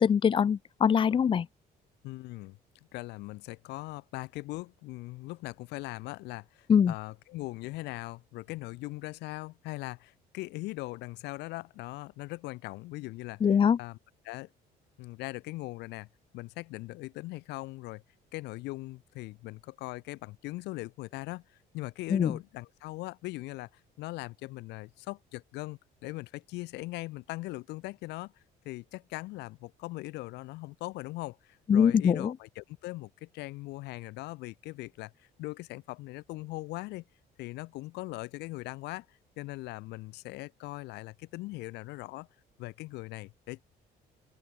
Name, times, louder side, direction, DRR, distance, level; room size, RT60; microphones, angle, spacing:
voice 1, 0.0-1.5 6.7-6.9 13.4-13.8 22.1-22.3 31.7-32.3, left 7 dB, 30° left, 0.5 m, -23 dB
voice 2, 2.0-2.6 2.9-14.0 14.2-14.5 15.0-16.1 16.3-18.0 18.3-28.3 28.6-37.0 37.4-42.3 42.6-43.6, left 20 dB, 90° left, 1.4 m, -40 dB
open air
cardioid pair, 110°, 17 cm